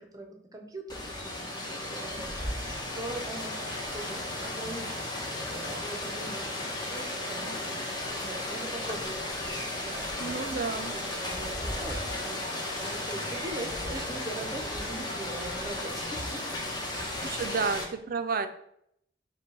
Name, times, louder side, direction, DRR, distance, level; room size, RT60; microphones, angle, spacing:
voice 1, 0.0-10.6 10.9-16.4, right 2 dB, 20° right, 3 dB, 0.7 m, -42 dB
Rain, 0.9-17.8, left 1 dB, 25° left, 0.9 m, -35 dB
voice 2, 10.2-11.0 17.2-18.5, right 5 dB, 55° right, 8 dB, 0.5 m, -31 dB
5.1 x 2.2 x 4.6 m, 0.72 s
head